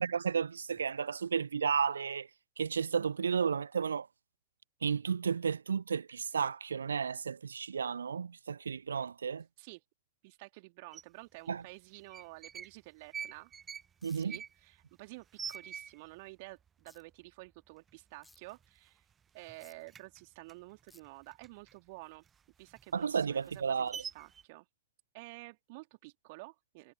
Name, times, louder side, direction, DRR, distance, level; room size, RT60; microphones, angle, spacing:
voice 1, 0.0-2.3 2.6-4.1 4.8-9.4 11.5-11.6 14.0-14.4 22.9-24.0, right 6 dB, 70° right, 0.5 m, -33 dB
voice 2, 10.2-13.5 14.1-19.0 19.3-22.2 22.6-24.7 25.1-26.9, right 25 dB, 50° right, 3.4 m, -51 dB
sound 1, 10.9-11.0 11.9-12.7 13.0-16.3 16.6-16.7 16.9-17.5 17.9-18.0 18.3-19.1 19.4-21.8 22.1-24.4, right 7 dB, 20° right, 0.6 m, -45 dB
sound 2, 14.0-14.2 15.5-15.6 16.9-17.0 18.2-18.4 19.6-19.7 20.9-21.0, left 2 dB, 5° left, 6.1 m, -60 dB
figure-of-eight pair, 90°, 0 cm